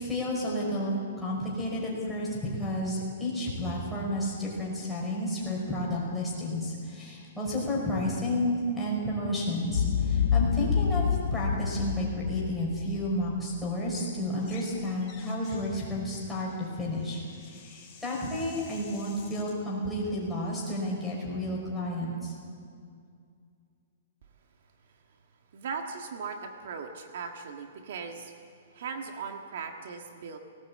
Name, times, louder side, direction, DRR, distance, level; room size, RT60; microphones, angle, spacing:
voice 1, 0.0-16.5 16.8-22.3, left 1 dB, 5° left, -6 dB, 5.2 m, -31 dB
Boom, 9.7-14.0, left 7 dB, 90° left, 2.2 m, -28 dB
sound 1, 14.3-14.7 15.0-19.6, left 6 dB, 20° left, 4.3 m, -52 dB
voice 2, 25.5-28.3 28.7-30.4, right 5 dB, 60° right, 5 dB, 1.6 m, -38 dB
18.5 x 18.5 x 8.6 m, 2.3 s
hypercardioid pair, 165°, 0 cm